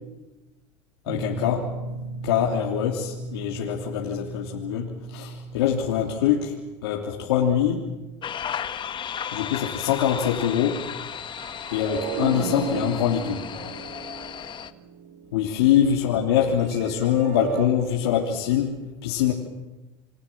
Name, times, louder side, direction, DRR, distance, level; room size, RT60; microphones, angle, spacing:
voice 1, 1.1-1.7 2.2-6.6 6.8-7.8 9.3-10.8 11.7-13.5 15.3-19.3, left 9 dB, 90° left, -1 dB, 3.3 m, -24 dB
Guitar, 1.1-6.3, right 3 dB, 50° right, 7.7 m, -36 dB
sound 1, 8.2-14.7, left 8 dB, 40° left, 1.7 m, -34 dB
sound 2, 11.3-15.6 16.5-17.7, right 10 dB, 75° right, 3.3 m, -34 dB
29.0 x 24.0 x 7.6 m, 1.1 s
supercardioid pair, 90°, 13 cm